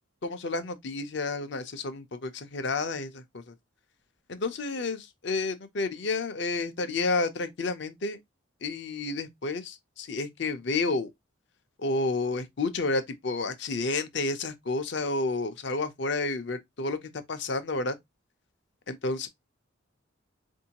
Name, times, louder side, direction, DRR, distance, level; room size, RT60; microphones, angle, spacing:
voice 1, 0.2-3.5 4.3-8.2 8.6-11.1 11.8-18.0 18.9-19.3, left 3 dB, 55° left, 0.6 m, -30 dB
4.5 x 2.7 x 2.8 m
head